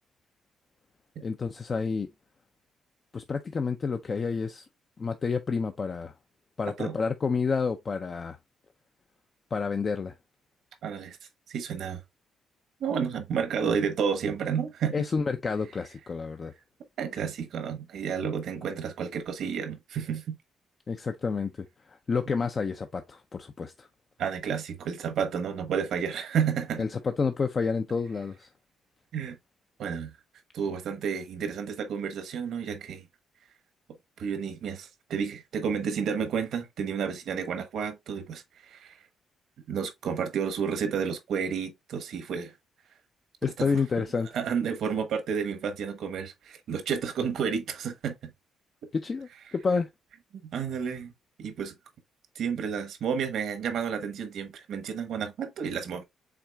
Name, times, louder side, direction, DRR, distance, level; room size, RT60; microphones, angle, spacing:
voice 1, 1.2-2.1 3.1-4.6 5.0-6.1 6.6-8.4 9.5-10.1 14.9-16.5 20.9-23.9 26.8-28.5 43.4-44.3 48.9-49.9, left 5 dB, 40° left, 0.5 m, -29 dB
voice 2, 10.8-11.2 11.5-12.0 12.8-14.9 17.0-20.4 24.2-26.8 29.1-29.4 29.8-30.1 30.5-33.0 34.2-39.0 39.7-42.5 43.6-43.7 44.3-48.1 50.4-51.1 51.4-51.7 52.3-56.0, right 7 dB, 70° right, 1.1 m, -31 dB
5.9 x 3.6 x 2.3 m
cardioid pair, 90°, 0 cm